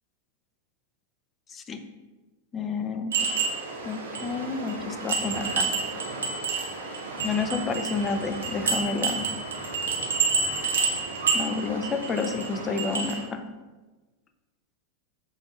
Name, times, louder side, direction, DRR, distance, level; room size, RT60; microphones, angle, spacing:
voice 1, 1.5-1.9 2.5-3.3 3.8-5.7 7.2-9.3 11.3-13.4, left 4 dB, 25° left, 8 dB, 0.3 m, -30 dB
sound 1, 3.1-13.2, right 4 dB, 65° right, 0.7 m, -29 dB
5.8 x 2.5 x 2.7 m, 1.2 s
figure-of-eight pair, 90°, 0 cm